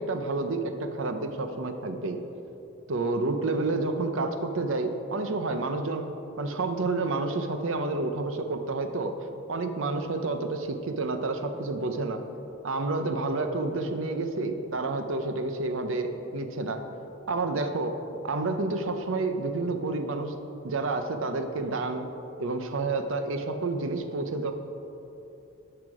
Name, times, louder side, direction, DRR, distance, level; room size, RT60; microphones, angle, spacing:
voice 1, 0.0-2.2 2.9-6.1 6.4-9.1 9.5-12.2 12.6-16.8 17.3-18.0 18.2-20.3 20.6-22.1 22.4-24.5, right 3 dB, 65° right, 7 dB, 0.7 m, -29 dB
12.5 x 5.8 x 4.8 m, 3.0 s
head